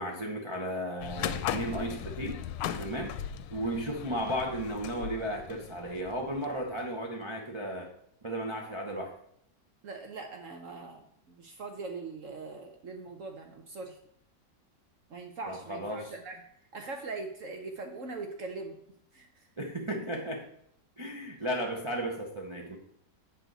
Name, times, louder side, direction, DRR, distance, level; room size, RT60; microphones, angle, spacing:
voice 1, 0.0-2.4 2.8-3.2 3.5-7.9 8.2-9.1 15.5-16.1 19.6-20.4 21.0-22.8, right 1 dB, 30° right, 0 dB, 0.5 m, -34 dB
sound 1, 1.0-6.9, left 10 dB, 85° left, 1.3 m, -38 dB
voice 2, 9.8-14.0 15.1-16.4 16.7-18.8 19.1-19.3, right 3 dB, 55° right, 3 dB, 1.0 m, -41 dB
8.1 x 6.3 x 3.9 m, 0.69 s
omnidirectional pair, 1.9 m